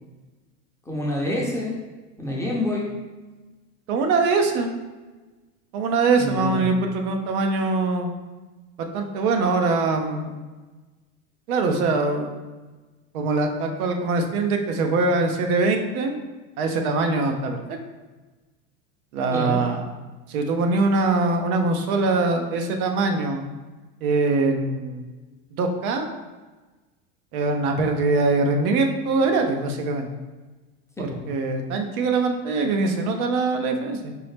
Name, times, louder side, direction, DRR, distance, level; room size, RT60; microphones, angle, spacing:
voice 1, 0.9-1.8 2.2-2.9 6.2-6.7 19.3-19.6 31.0-31.2, left 1 dB, 5° left, -4 dB, 0.6 m, -27 dB
voice 2, 3.9-4.7 5.7-8.1 8.9-10.3 11.5-12.3 13.1-16.2 16.6-17.8 19.1-19.9 20.3-23.5 24.0-25.1 25.5-26.1 27.3-30.1 31.0-34.1, right 3 dB, 75° right, 4 dB, 0.7 m, -23 dB
4.5 x 2.0 x 3.2 m, 1.2 s
hypercardioid pair, 105°, 43 cm